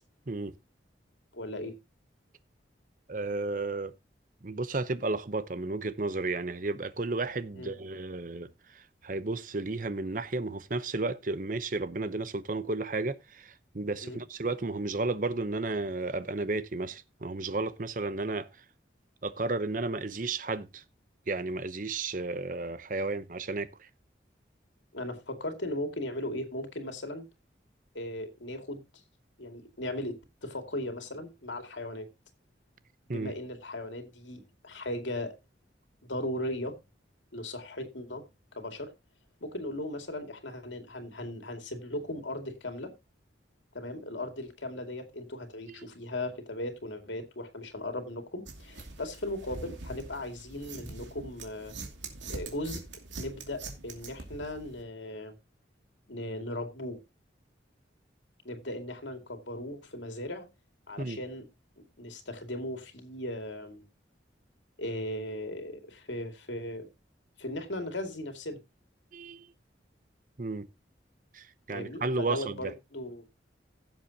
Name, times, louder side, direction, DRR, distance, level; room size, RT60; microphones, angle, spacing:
voice 1, 1.3-1.7 7.5-7.7 14.0-14.2 24.9-27.2 27.9-28.8 29.4-32.1 33.1-35.3 36.0-36.8 37.3-38.2 38.5-38.9 39.4-42.9 43.7-51.7 52.3-52.8 53.2-55.3 56.1-57.0 58.4-60.5 60.9-61.5 61.8-63.8 64.8-66.9 67.4-68.6 71.7-73.2, left 1 dB, 85° left, 2.4 m, -37 dB
voice 2, 3.1-3.9 4.4-18.5 19.2-20.8 21.3-23.9 33.1-33.3 45.7-45.9 61.0-61.2 69.1-69.5 70.4-70.7 71.3-72.7, right 3 dB, 45° right, 0.8 m, -33 dB
sound 1, 48.5-54.8, right 3 dB, 90° right, 2.6 m, -43 dB
16.0 x 7.4 x 2.9 m
head